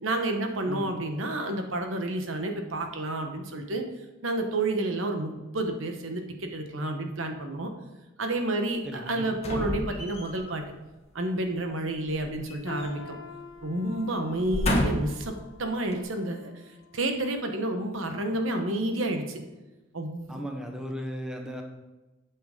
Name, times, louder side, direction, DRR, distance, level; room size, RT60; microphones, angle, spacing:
voice 1, 0.0-3.8 4.2-7.7 8.2-10.6 11.1-13.2 13.6-15.3 15.6-16.5 16.9-19.4 19.9-20.4, right 1 dB, 70° right, 5 dB, 1.1 m, -30 dB
voice 2, 8.8-9.3 20.3-21.6, equal, 5° right, 2 dB, 0.9 m, -36 dB
sound 1, 9.4-10.5 12.1-13.2 13.5-13.7 14.3-15.3 15.9-16.0, left 1 dB, 30° left, 1.5 m, -30 dB
sound 2, 12.7-18.6 19.0-19.2 20.0-20.1, left 3 dB, 75° left, 0.8 m, -48 dB
8.2 x 6.0 x 5.2 m, 1.1 s
head